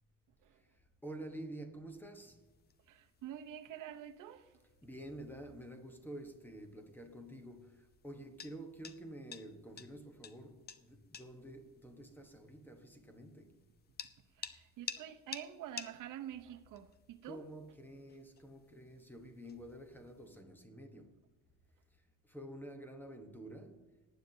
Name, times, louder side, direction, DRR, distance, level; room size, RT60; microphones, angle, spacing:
voice 1, 0.7-2.5 4.8-13.6 17.2-21.2 21.9-24.0, right 1 dB, 5° left, 1.0 m, -49 dB
sound 1, 2.1-20.4, left 7 dB, 30° left, 0.6 m, -54 dB
voice 2, 2.9-4.5 14.4-17.4, right 11 dB, 65° right, 0.9 m, -47 dB
19.5 x 9.4 x 2.8 m
cardioid pair, 165°, 34 cm